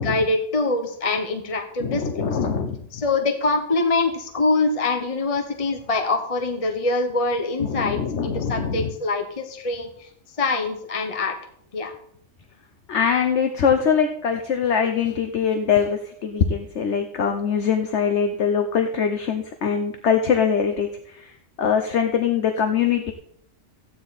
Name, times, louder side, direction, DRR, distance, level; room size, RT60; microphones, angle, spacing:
voice 1, 0.0-2.3 2.9-10.1 10.4-11.4 11.7-11.9, left 3 dB, 30° left, 5 dB, 1.1 m, -24 dB
voice 2, 1.8-2.8 7.6-8.9 12.9-23.1, left 7 dB, 65° left, 6 dB, 1.2 m, -23 dB
14.5 x 9.8 x 4.2 m, 0.69 s
omnidirectional pair, 1.3 m